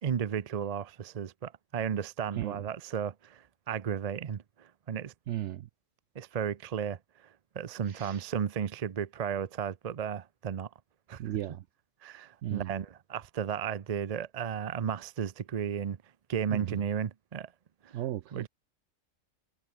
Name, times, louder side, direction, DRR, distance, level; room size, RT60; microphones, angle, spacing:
voice 1, 0.0-5.1 6.2-7.0 7.6-10.7 11.1-11.2 12.0-16.0 16.3-17.5 17.8-18.0 18.3-18.5, right 8 dB, 45° right, 0.5 m, -34 dB
voice 2, 5.3-5.7 7.9-8.2 11.2-11.6 12.4-12.7 16.5-16.8 17.9-18.5, right 13 dB, 70° right, 0.9 m, -35 dB
omnidirectional pair, 1.3 m